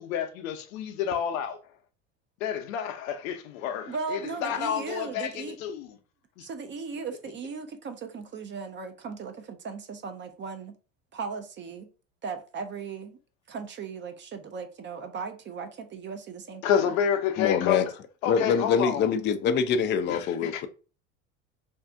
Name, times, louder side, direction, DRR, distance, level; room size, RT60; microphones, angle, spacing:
voice 1, 0.0-1.6 2.4-5.9 6.4-6.5 16.6-17.9 18.2-19.1 20.1-20.7, left 8 dB, 80° left, 0.7 m, -29 dB
voice 2, 3.9-5.6 6.4-10.8 11.1-11.9 12.2-13.2 13.5-16.9, right 5 dB, 30° right, 0.5 m, -37 dB
voice 3, 17.4-17.9 18.3-20.7, left 6 dB, 30° left, 0.4 m, -25 dB
2.6 x 2.4 x 3.4 m
hypercardioid pair, 85°, 40 cm